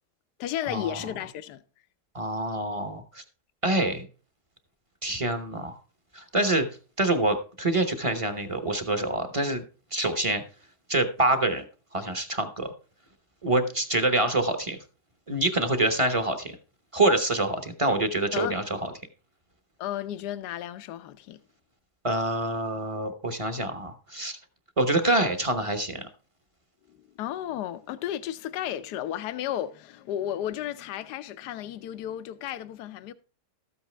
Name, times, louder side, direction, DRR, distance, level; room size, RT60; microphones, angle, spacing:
voice 1, 0.4-1.6 18.3-18.5 19.8-21.4 26.9-33.1, left 11 dB, 85° left, 1.2 m, -33 dB
voice 2, 2.1-3.2 3.6-4.1 5.0-5.8 6.1-6.7 7.0-9.6 9.9-10.4 10.9-11.6 11.9-12.7 13.4-14.8 15.3-16.6 16.9-18.8 22.0-24.4 24.8-26.1, right 2 dB, 25° right, 0.8 m, -26 dB
13.0 x 8.4 x 3.3 m
omnidirectional pair, 1.7 m